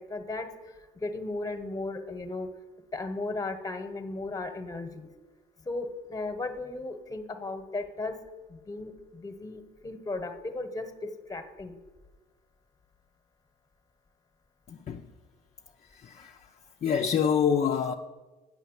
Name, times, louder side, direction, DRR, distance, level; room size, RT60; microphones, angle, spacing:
voice 1, 0.1-0.5 0.9-2.5 2.9-5.1 5.6-8.2 8.5-11.7, left 2 dB, 20° left, 1.2 m, -36 dB
voice 2, 14.7-15.0 16.0-16.4 16.8-17.9, left 7 dB, 40° left, 0.6 m, -26 dB
9.3 x 6.7 x 8.2 m
cardioid pair, 110°, 17 cm